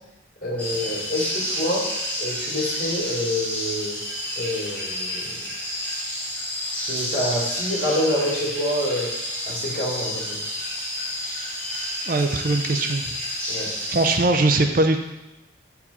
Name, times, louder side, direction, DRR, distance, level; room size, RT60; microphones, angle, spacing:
voice 1, 0.4-1.8 2.2-4.0 4.4-5.2 6.9-9.1 9.5-10.4 13.5-13.7, left 1 dB, 45° left, -6 dB, 2.7 m, -27 dB
sound 1, 0.6-14.2, equal, 5° left, 2.8 m, -30 dB
voice 2, 12.1-13.0 13.9-15.0, right 2 dB, 45° right, 6 dB, 0.5 m, -20 dB
8.8 x 4.7 x 4.2 m, 0.95 s
head